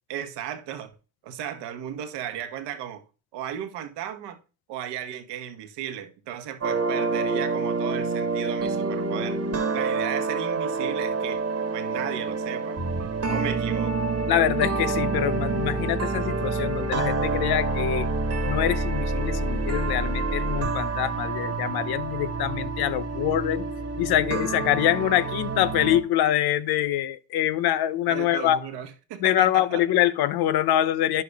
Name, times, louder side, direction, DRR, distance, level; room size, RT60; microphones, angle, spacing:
voice 1, 0.1-0.9 1.2-3.0 3.3-4.4 4.7-9.4 9.7-11.4 11.7-12.8 13.3-14.0 28.1-29.8, right 10 dB, 70° right, 1.1 m, -35 dB
sound 1, 6.6-26.0, right 3 dB, 35° right, 1.4 m, -27 dB
voice 2, 14.3-18.1 18.4-23.6 24.0-28.6 29.2-31.2, left 12 dB, 60° left, 0.6 m, -24 dB
10.5 x 6.7 x 2.3 m
supercardioid pair, 75°, 42 cm